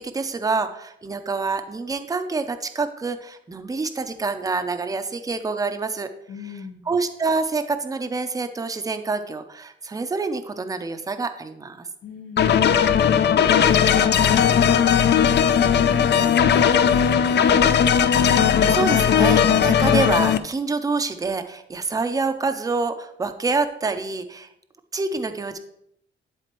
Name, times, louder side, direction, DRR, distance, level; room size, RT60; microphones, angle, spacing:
voice 1, 0.0-6.1 6.9-11.9 18.1-24.5 24.9-25.6, right 4 dB, 15° right, 9 dB, 0.5 m, -27 dB
voice 2, 6.3-6.9 12.0-18.1, left 4 dB, 70° left, 2 dB, 1.2 m, -37 dB
sound 1, 12.4-20.4, left 8 dB, 55° left, 0.4 m, -17 dB
11.0 x 4.1 x 3.0 m, 0.76 s
wide cardioid pair, 135°, 21 cm